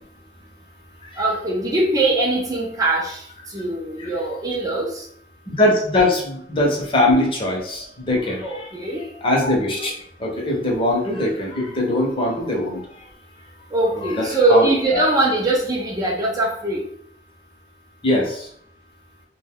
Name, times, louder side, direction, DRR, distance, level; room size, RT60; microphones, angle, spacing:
voice 1, 1.2-3.2 3.5-5.0 8.4-9.0 13.7-16.8, right 2 dB, 20° right, 0 dB, 0.4 m, -21 dB
voice 2, 5.5-9.9 10.2-13.1 13.9-15.0 18.0-18.5, left 1 dB, 30° left, -1 dB, 0.7 m, -22 dB
2.6 x 2.1 x 3.5 m, 0.66 s
head